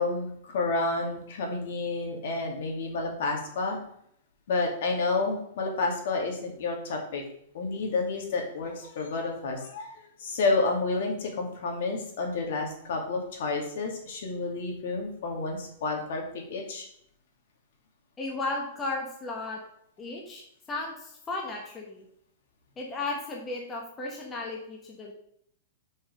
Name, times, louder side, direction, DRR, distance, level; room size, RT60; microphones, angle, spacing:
voice 1, 0.0-3.8 4.5-7.2 7.5-16.9, left 3 dB, 65° left, 2 dB, 2.2 m, -30 dB
voice 2, 18.2-19.6 20.0-20.4 20.7-22.0 22.8-25.1, left 2 dB, 15° left, -1 dB, 1.2 m, -34 dB
5.7 x 5.4 x 5.3 m, 0.68 s
supercardioid pair, 160°, 0 cm